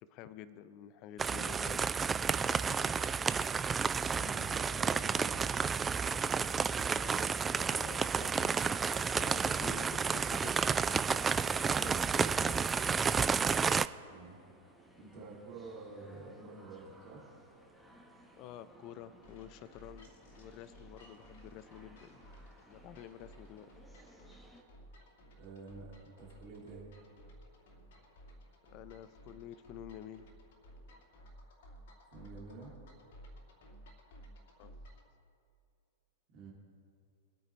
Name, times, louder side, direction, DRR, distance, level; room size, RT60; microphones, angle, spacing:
voice 1, 0.0-1.9 6.9-10.6 11.5-12.7 18.4-22.2 22.7-23.7 28.7-30.2 34.6-34.8, left 10 dB, 40° left, 14 dB, 0.7 m, -50 dB
sound 1, 1.2-13.9, right 6 dB, 15° right, 0.3 m, -31 dB
voice 2, 3.8-5.6 14.1-14.4 14.9-17.3 25.4-26.9 32.1-32.7 36.3-36.5, right 3 dB, 40° right, -4 dB, 3.1 m, -49 dB
sound 2, 6.4-24.6, equal, 5° left, 1.5 m, -60 dB
sound 3, 19.2-35.1, equal, 55° left, 2.5 m, -56 dB
23.0 x 9.1 x 3.4 m, 2.5 s
figure-of-eight pair, 100°, 0 cm